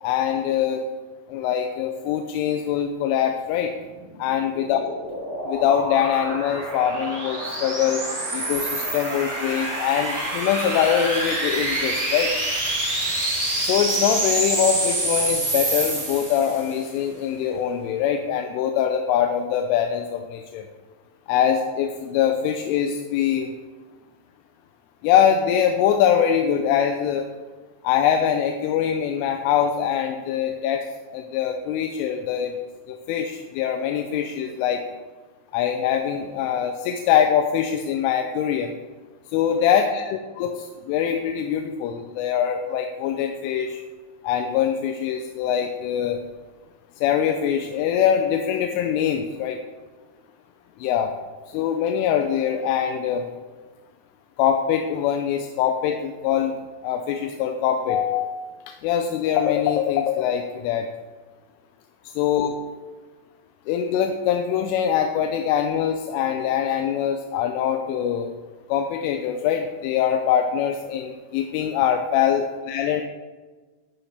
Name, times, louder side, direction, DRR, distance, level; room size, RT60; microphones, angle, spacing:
voice 1, 0.0-0.9 1.3-3.7 4.2-4.8 5.5-8.0 8.3-12.4 13.6-20.6 21.3-23.5 25.0-27.3 27.8-30.8 31.1-32.6 32.9-34.8 35.5-38.7 39.3-43.8 44.2-46.2 47.0-49.6 50.8-51.1 51.5-53.3 54.4-56.6 56.8-58.3 58.7-60.9 62.1-62.5 63.7-68.3 68.7-73.0, left 9 dB, 90° left, 4 dB, 3.2 m, -23 dB
sound 1, 4.1-16.8, right 1 dB, 20° right, 1.4 m, -27 dB
11.0 x 10.0 x 3.3 m, 1.3 s
omnidirectional pair, 5.5 m